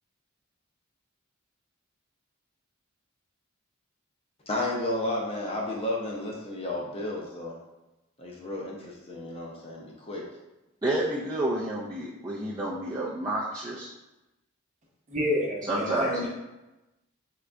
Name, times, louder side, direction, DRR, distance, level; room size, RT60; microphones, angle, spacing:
voice 1, 4.5-7.6 8.2-10.3, left 1 dB, 25° left, -2 dB, 0.7 m, -32 dB
voice 2, 10.8-13.9 15.7-16.3, right 1 dB, 15° right, -7 dB, 0.5 m, -29 dB
voice 3, 15.1-16.3, equal, 35° right, -3 dB, 0.9 m, -28 dB
3.8 x 3.2 x 3.4 m, 1.0 s
head